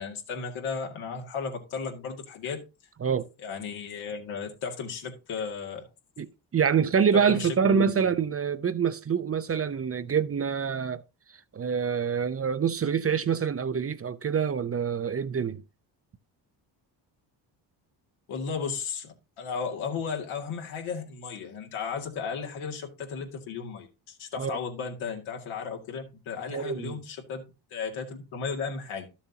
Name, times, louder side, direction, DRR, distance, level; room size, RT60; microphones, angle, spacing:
voice 1, 0.0-2.6 3.4-5.9 7.1-8.1 18.3-27.5 27.7-29.1, left 5 dB, 80° left, 2.2 m, -34 dB
voice 2, 6.2-11.0 11.5-15.6 24.3-24.6 26.5-27.0, right 7 dB, 30° right, 0.6 m, -26 dB
12.0 x 7.1 x 2.8 m
supercardioid pair, 65°, 48 cm